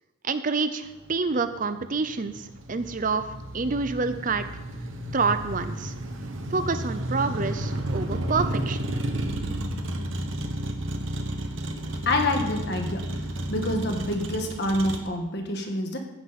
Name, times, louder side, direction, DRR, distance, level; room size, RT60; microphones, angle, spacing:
voice 1, 0.2-3.2 3.5-4.5 5.1-5.9 6.5-8.8, right 4 dB, 40° right, 11 dB, 0.6 m, -27 dB
Motor vehicle (road), 0.9-15.0, right 1 dB, 65° right, 1.4 m, -32 dB
voice 2, 12.0-13.0 13.5-16.0, left 1 dB, 50° left, 3 dB, 1.5 m, -27 dB
15.5 x 9.6 x 4.2 m, 0.97 s
head